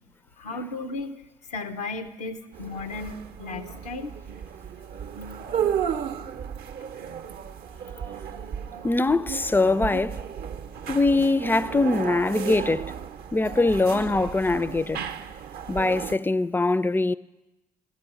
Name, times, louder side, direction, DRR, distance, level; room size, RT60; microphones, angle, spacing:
voice 1, 0.4-1.1 1.5-4.1 8.6-8.7, left 3 dB, 85° left, 0.5 m, -35 dB
sound 1, 2.5-16.2, right 8 dB, 55° right, 0.6 m, -34 dB
voice 2, 8.8-10.2 10.9-12.8 13.3-15.0 15.7-17.1, left 3 dB, 10° left, 0.3 m, -22 dB
12.5 x 6.3 x 8.8 m
hypercardioid pair, 45°, 19 cm